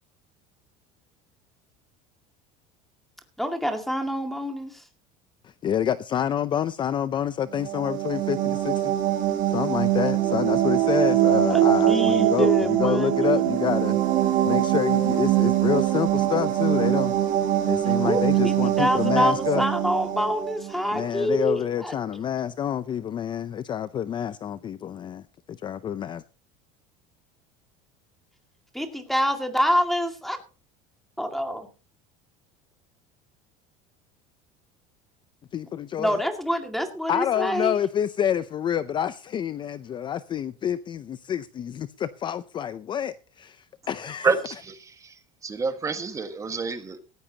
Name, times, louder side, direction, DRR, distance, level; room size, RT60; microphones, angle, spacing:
voice 1, 3.4-4.8 11.5-13.5 18.0-22.0 28.7-30.4 31.2-31.7 36.0-37.8, equal, ahead, 2.1 m, -26 dB
voice 2, 5.4-8.9 9.5-14.0 14.4-17.1 17.7-19.6 20.9-25.2 25.5-26.2 35.5-36.2 37.1-44.4, left 9 dB, 25° left, 0.5 m, -28 dB
sound 1, 7.5-21.1, right 12 dB, 50° right, 6.3 m, -23 dB
voice 3, 44.2-44.7 45.4-47.0, right 4 dB, 20° right, 1.6 m, -27 dB
17.5 x 15.0 x 2.9 m
cardioid pair, 150°, 17 cm